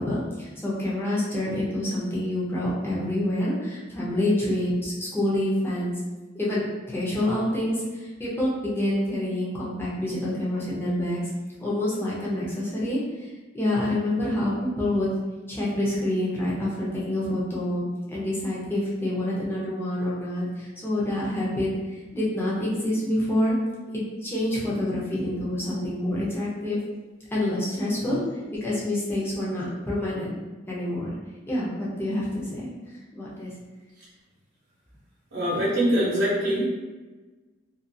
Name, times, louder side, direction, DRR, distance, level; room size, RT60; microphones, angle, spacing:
voice 1, 0.0-6.0 6.3-11.2 11.6-13.3 13.5-15.1 15.5-21.7 22.1-23.5 23.9-26.8 27.3-28.2 28.6-31.1 31.5-32.7 33.1-33.5, left 1 dB, 10° left, -7 dB, 0.6 m, -27 dB
voice 2, 35.3-36.6, equal, 75° right, -9 dB, 0.8 m, -23 dB
2.4 x 2.4 x 2.6 m, 1.2 s
head